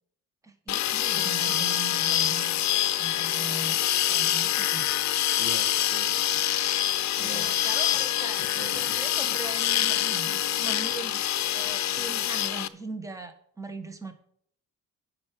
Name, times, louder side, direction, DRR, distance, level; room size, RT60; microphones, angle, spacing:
voice 1, 0.4-2.7 3.0-3.8 4.1-4.9 6.1-6.6 7.0-8.4 8.7-11.2 11.5-14.1, right 3 dB, 10° right, 7 dB, 1.3 m, -40 dB
sound 1, 0.7-12.7, left 12 dB, 65° left, 0.7 m, -26 dB
voice 2, 5.4-6.1 7.2-7.6 8.4-8.8, right 3 dB, 80° right, 6 dB, 1.9 m, -41 dB
9.5 x 5.9 x 7.5 m, 0.64 s
cardioid pair, 90°, 30 cm